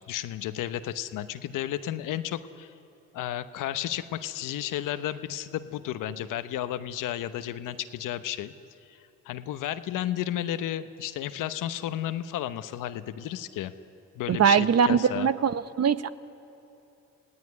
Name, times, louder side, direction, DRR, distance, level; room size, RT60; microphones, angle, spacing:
voice 1, 0.1-2.7 3.1-8.5 8.9-9.0 9.2-13.7 14.1-15.3, left 12 dB, 85° left, 11 dB, 1.0 m, -33 dB
voice 2, 14.3-16.1, right 7 dB, 55° right, 13 dB, 0.9 m, -22 dB
27.5 x 17.0 x 9.8 m, 2.9 s
supercardioid pair, 60°, 31 cm